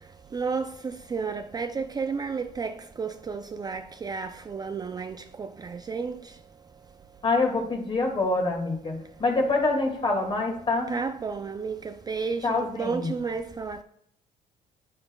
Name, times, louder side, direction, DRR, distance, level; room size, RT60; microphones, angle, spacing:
voice 1, 0.3-6.4 10.9-13.8, right 5 dB, 25° right, 0.4 m, -32 dB
voice 2, 7.2-10.9 12.4-13.1, left 3 dB, 30° left, 2.1 m, -26 dB
9.3 x 8.6 x 2.3 m
cardioid pair, 110°, 17 cm